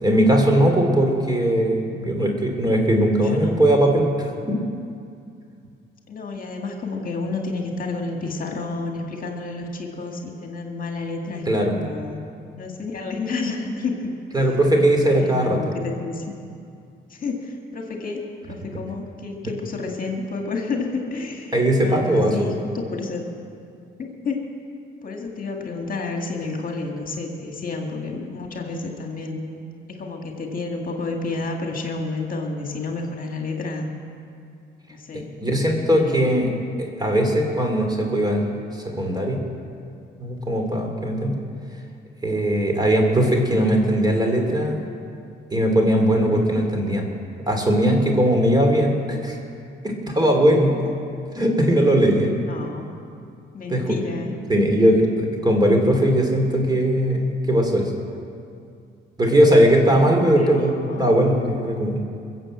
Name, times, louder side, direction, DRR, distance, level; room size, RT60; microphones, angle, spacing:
voice 1, 0.0-4.6 11.5-11.7 14.3-15.6 21.5-22.3 35.1-36.5 36.8-38.4 38.7-39.4 40.2-41.3 42.2-44.8 45.5-47.1 47.5-49.4 49.8-50.8 51.3-52.3 53.7-54.0 54.5-57.9 59.2-62.0, right 1 dB, 20° right, 2 dB, 3.0 m, -19 dB
voice 2, 3.2-3.6 6.1-12.2 12.6-13.9 14.4-14.5 14.8-16.2 17.1-18.2 18.5-23.2 24.0-24.4 25.0-29.4 29.9-33.9 34.9-35.3 35.9-36.2 41.0-41.3 52.4-52.8 53.5-54.3 60.3-61.2, left 3 dB, 45° left, 2 dB, 2.2 m, -30 dB
22.0 x 7.6 x 7.7 m, 2.4 s
cardioid pair, 90°, 20 cm